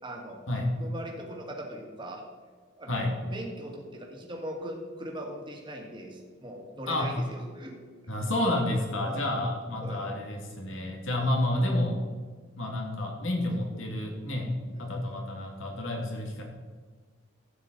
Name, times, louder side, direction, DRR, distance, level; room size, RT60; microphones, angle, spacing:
voice 1, 0.0-0.4 0.8-2.2 2.8-7.7 9.0-9.2 9.8-10.0 11.1-11.3 14.7-14.8, right 1 dB, 25° right, 0 dB, 1.8 m, -40 dB
voice 2, 8.1-12.0 12.6-14.5 14.8-16.4, left 1 dB, 80° left, 1 dB, 2.3 m, -30 dB
12.5 x 9.0 x 4.0 m, 1.5 s
head